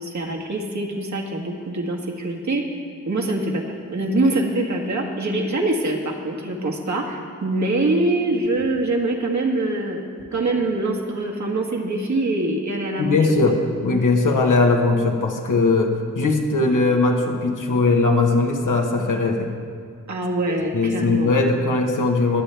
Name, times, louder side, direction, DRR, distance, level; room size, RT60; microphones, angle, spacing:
voice 1, 0.0-2.6 3.1-10.0 10.3-13.2 20.1-21.3, right 2 dB, 65° right, 0 dB, 1.7 m, -24 dB
voice 2, 13.0-13.6 13.8-19.5 20.5-22.4, left 3 dB, 75° left, 2 dB, 1.3 m, -19 dB
20.5 x 7.3 x 3.4 m, 2.3 s
cardioid pair, 40°, 31 cm